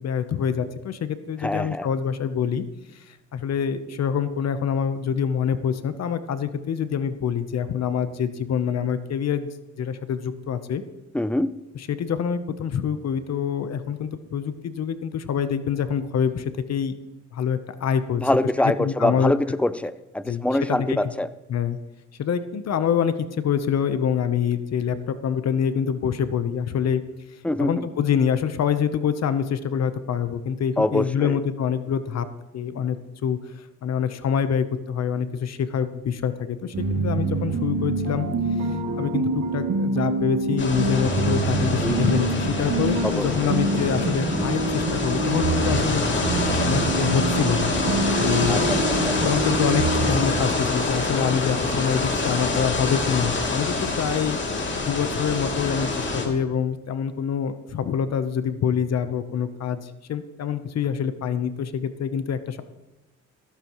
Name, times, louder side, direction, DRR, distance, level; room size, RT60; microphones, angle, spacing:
voice 1, 0.0-2.6 2.9-9.5 9.8-10.8 11.8-16.9 17.3-18.2 18.8-19.3 20.3-20.4 20.7-21.0 21.5-21.8 22.2-27.0 27.6-32.3 32.5-33.0 33.2-38.3 38.6-46.0 46.6-47.7 48.2-48.6 49.1-54.4 54.8-62.6, left 7 dB, 60° left, 11 dB, 1.0 m, -26 dB
voice 2, 1.4-1.9 11.1-11.5 18.2-21.3 27.4-27.9 30.8-31.4 41.8-42.1 43.0-43.5 48.5-49.2, left 1 dB, 5° left, 14 dB, 0.6 m, -24 dB
sound 1, 36.7-50.4, right 2 dB, 70° right, 2.8 m, -26 dB
sound 2, 40.6-56.3, left 3 dB, 40° left, 2.9 m, -26 dB
15.5 x 14.0 x 3.1 m, 1.1 s
cardioid pair, 90°, 30 cm